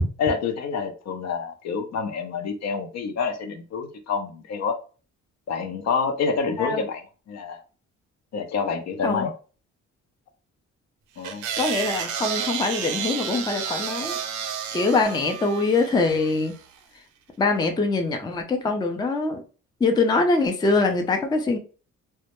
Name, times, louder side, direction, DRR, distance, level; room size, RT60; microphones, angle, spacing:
voice 1, 0.2-4.8 5.5-7.0 7.3-7.6 8.3-9.3 11.2-11.4, left 5 dB, 60° left, 0.5 m, -27 dB
sound 1, 11.2-16.6, right 8 dB, 80° right, 0.5 m, -31 dB
voice 2, 11.6-14.2 14.7-16.5 17.4-19.4 19.8-21.6, left 3 dB, 15° left, 0.4 m, -23 dB
2.2 x 2.0 x 2.9 m
cardioid pair, 90°, 30 cm